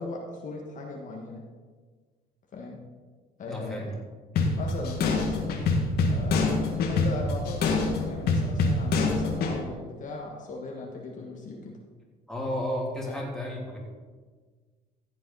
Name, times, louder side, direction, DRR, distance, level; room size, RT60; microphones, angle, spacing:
voice 1, 0.0-1.4 2.5-2.8 3.4-4.0 4.6-5.5 6.1-11.8 13.0-13.2, left 3 dB, 50° left, 0 dB, 1.5 m, -38 dB
voice 2, 3.4-3.9 4.3-4.6 12.3-13.8, left 1 dB, 5° left, -4 dB, 3.1 m, -33 dB
sound 1, 4.4-9.6, left 3 dB, 70° left, 1.8 m, -25 dB
15.0 x 7.5 x 4.1 m, 1.5 s
cardioid pair, 110°, 17 cm